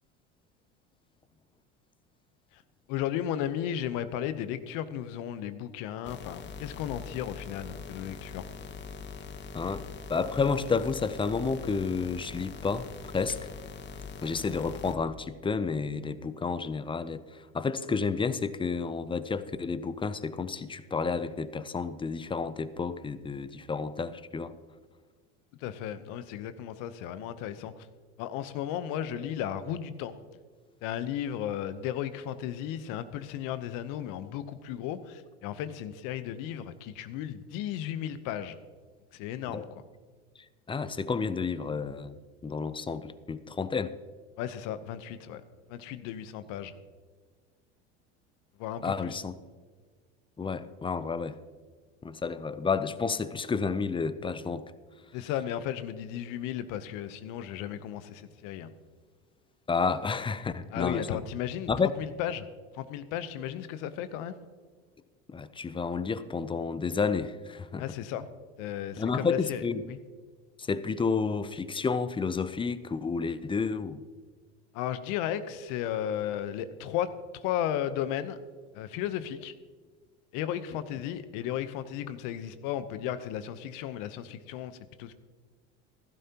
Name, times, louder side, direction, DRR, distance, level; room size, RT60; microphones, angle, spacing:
voice 1, 2.9-8.4 25.6-27.7 28.2-30.1 30.8-38.6 39.1-39.6 44.4-45.4 45.7-46.7 48.6-49.1 55.1-58.7 60.7-61.7 62.0-62.5 62.7-64.3 67.8-68.3 68.6-69.6 69.9-70.0 74.7-78.4 78.7-79.5 80.3-84.7 85.0-85.1, left 10 dB, 65° left, 12 dB, 0.9 m, -34 dB
sound 1, 6.0-14.9, left 5 dB, 30° left, 1.1 m, -42 dB
voice 2, 9.5-13.5 14.2-24.6 39.5-39.7 40.7-42.2 42.4-44.0 48.8-49.4 50.4-51.4 52.0-54.6 59.7-61.2 61.7-61.9 65.3-67.9 69.0-69.8 70.6-74.0, left 5 dB, 15° left, 14 dB, 0.5 m, -31 dB
15.0 x 12.5 x 2.9 m, 1.5 s
supercardioid pair, 95°, 35 cm